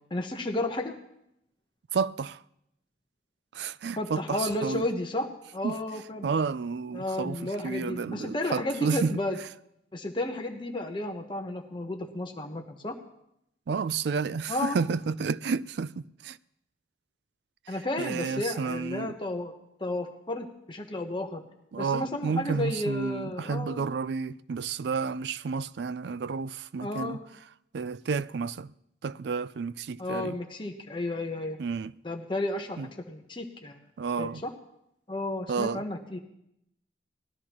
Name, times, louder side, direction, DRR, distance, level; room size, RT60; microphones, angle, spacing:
voice 1, 0.1-0.9 4.0-6.3 6.9-9.4 9.9-13.0 14.5-14.8 17.7-19.5 19.8-21.4 21.8-23.8 26.8-27.2 30.0-31.6 32.0-33.8 34.2-34.5 35.1-36.2, left 1 dB, 25° left, 1.0 m, -32 dB
voice 2, 1.9-2.4 3.5-4.8 5.6-5.7 6.2-9.2 13.7-16.4 18.0-19.1 21.7-27.2 27.7-28.7 29.0-30.4 31.6-31.9 32.8-32.9 34.0-34.4 35.5-35.8, right 5 dB, 65° right, 0.4 m, -31 dB
19.0 x 13.0 x 3.0 m
head